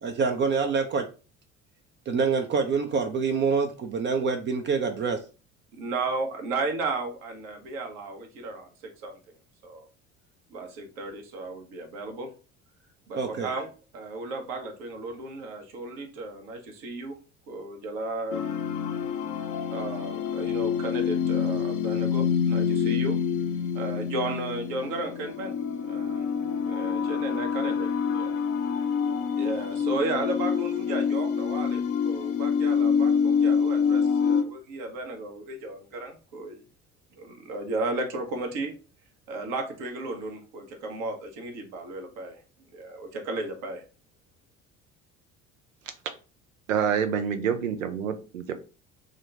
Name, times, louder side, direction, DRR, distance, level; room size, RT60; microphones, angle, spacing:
voice 1, 0.0-1.1 2.1-5.2 13.2-13.5, right 5 dB, 30° right, 5 dB, 0.5 m, -26 dB
voice 2, 5.7-9.2 9.6-9.9 10.5-12.3 13.1-17.2 17.5-18.4 19.7-23.2 23.7-25.5 25.8-26.3 26.6-28.3 29.4-36.6 37.1-38.7 39.3-42.4 42.7-43.8, right 2 dB, 55° right, 4 dB, 1.0 m, -34 dB
sound 1, 18.3-34.4, left 6 dB, 40° left, 0.6 m, -26 dB
voice 3, 46.7-48.5, right 7 dB, 75° right, 8 dB, 0.6 m, -27 dB
3.7 x 2.2 x 3.7 m, 0.35 s
figure-of-eight pair, 55°, 39 cm